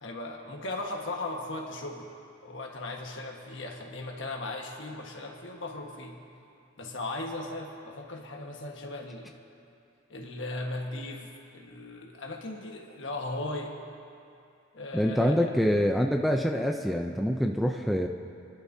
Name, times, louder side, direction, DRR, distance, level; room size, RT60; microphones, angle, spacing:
voice 1, 0.0-2.1 2.4-6.2 6.8-9.4 10.1-13.8 14.7-15.6, left 2 dB, 65° left, 1 dB, 1.4 m, -37 dB
voice 2, 14.9-18.1, equal, ahead, 3 dB, 0.4 m, -25 dB
29.5 x 11.5 x 2.7 m, 2.5 s
head